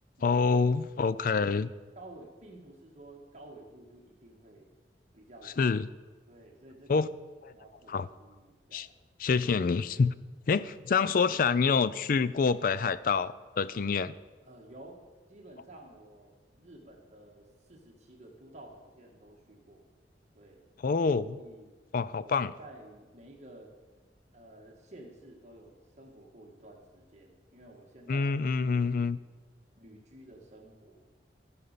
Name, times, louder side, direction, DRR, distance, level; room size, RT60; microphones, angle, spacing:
voice 1, 0.2-1.7 5.6-5.9 6.9-7.1 7.4-7.5 7.9-8.1 8.7-8.9 9.2-10.1 10.5-14.1 20.8-21.4 21.9-22.5 28.1-29.2, left 5 dB, 50° left, 16 dB, 0.4 m, -27 dB
voice 2, 2.0-4.7 5.1-5.6 6.3-7.1 7.5-8.9 14.5-15.0 15.3-19.8 20.3-20.6 21.4-21.7 22.2-23.7 24.3-29.2 29.8-31.1, right 1 dB, 40° right, 0 dB, 1.8 m, -52 dB
15.0 x 5.6 x 6.7 m, 1.3 s
head